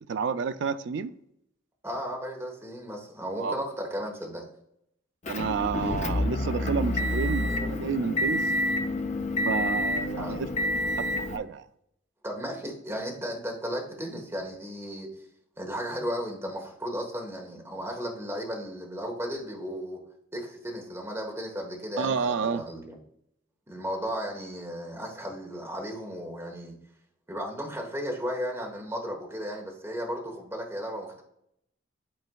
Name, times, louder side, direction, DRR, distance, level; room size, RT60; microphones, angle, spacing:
voice 1, 0.1-1.1 3.4-3.5 5.3-8.4 9.5-10.5 11.2-11.7 22.0-22.7, right 5 dB, 60° right, 0.3 m, -30 dB
voice 2, 1.8-4.5 10.2-10.4 12.2-15.1 15.6-20.0 20.3-23.0 23.7-26.7 27.3-31.2, equal, 10° right, 1.1 m, -35 dB
Motor vehicle (road) / Engine, 5.3-11.4, left 1 dB, 35° left, 0.5 m, -28 dB
11.0 x 4.2 x 2.3 m
head